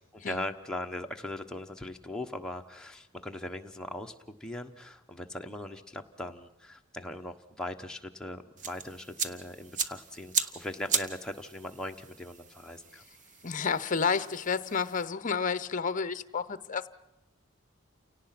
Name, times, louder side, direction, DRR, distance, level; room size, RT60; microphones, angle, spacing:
voice 1, 0.1-13.0, left 1 dB, 5° left, 1.2 m, -40 dB
sound 1, 8.6-15.0, right 6 dB, 40° right, 1.0 m, -37 dB
voice 2, 13.4-16.9, left 5 dB, 40° left, 0.8 m, -30 dB
29.0 x 18.0 x 5.9 m
head